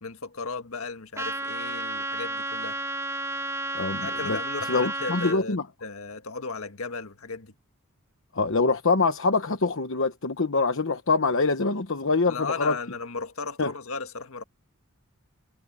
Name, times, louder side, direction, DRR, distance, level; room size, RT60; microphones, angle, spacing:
voice 1, 0.0-2.8 4.0-7.5 12.3-14.4, left 4 dB, 85° left, 1.7 m, -35 dB
Trumpet, 1.2-5.4, right 2 dB, 15° right, 2.8 m, -32 dB
voice 2, 3.7-4.4 4.7-5.6 8.3-12.8 13.6-13.7, left 3 dB, 65° left, 1.1 m, -24 dB
head